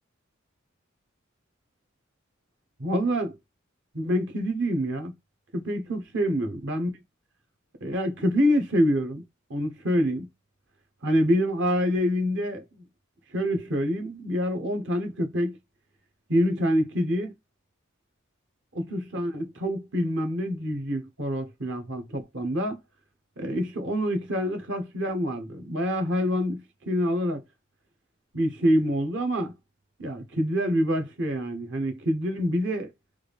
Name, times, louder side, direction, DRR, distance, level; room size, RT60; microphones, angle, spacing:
voice 1, 2.8-3.4 3.9-5.1 5.5-6.9 7.8-9.2 9.5-10.3 11.0-12.6 13.3-15.6 16.3-17.3 18.7-22.8 23.4-27.4 28.3-29.5 30.0-32.9, equal, 60° right, 0.9 m, -26 dB
3.4 x 2.3 x 3.4 m
head